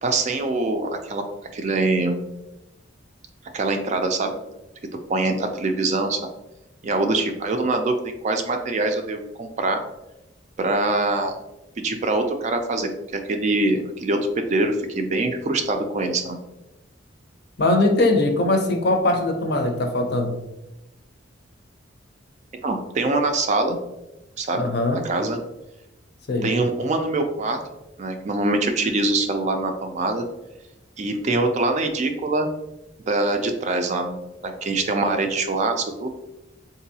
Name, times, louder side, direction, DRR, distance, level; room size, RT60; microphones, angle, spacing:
voice 1, 0.0-1.2 1.5-2.2 3.5-4.4 5.1-6.2 6.8-9.8 10.6-11.4 11.8-16.4 22.6-23.8 24.4-24.7 24.9-25.4 26.4-27.6 28.0-30.2 31.0-32.5 33.1-36.1, right 2 dB, 35° right, 5 dB, 0.3 m, -24 dB
voice 2, 17.6-20.4 24.5-25.0 26.3-26.5, left 2 dB, 55° left, 4 dB, 0.6 m, -21 dB
3.9 x 2.6 x 2.7 m, 0.95 s
head